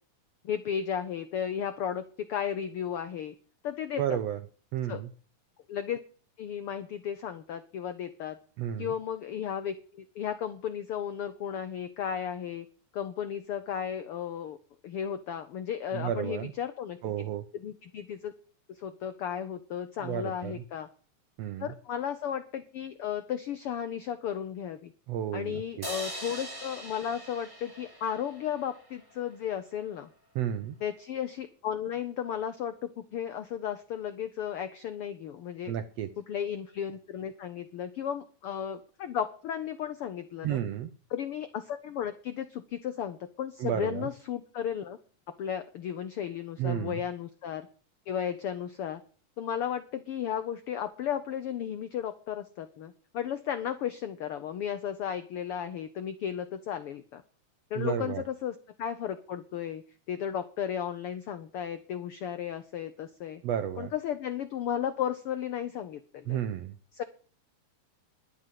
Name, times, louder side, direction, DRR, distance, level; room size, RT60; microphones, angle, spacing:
voice 1, 0.4-3.3 3.6-4.2 4.9-5.0 5.7-6.0 6.4-8.4 8.8-12.7 12.9-14.6 14.8-17.1 17.5-18.3 18.7-20.9 21.6-24.9 25.3-30.1 30.8-35.7 36.3-40.6 41.1-45.0 45.4-47.7 48.1-49.0 49.4-57.2 57.7-63.4 63.8-66.4 66.9-67.0, left 9 dB, 90° left, 11 dB, 1.2 m, -34 dB
voice 2, 4.0-4.4 4.7-5.1 8.6-8.9 15.9-16.5 17.0-17.5 20.0-20.6 21.4-21.7 25.1-25.9 30.3-30.8 35.7-36.1 40.4-40.9 43.6-44.1 46.6-47.0 57.7-58.2 63.4-63.9 66.3-66.8, right 10 dB, 80° right, 11 dB, 1.5 m, -32 dB
sound 1, 25.8-29.1, right 1 dB, 5° right, 3.1 m, -42 dB
11.5 x 9.0 x 7.5 m, 0.41 s
omnidirectional pair, 3.7 m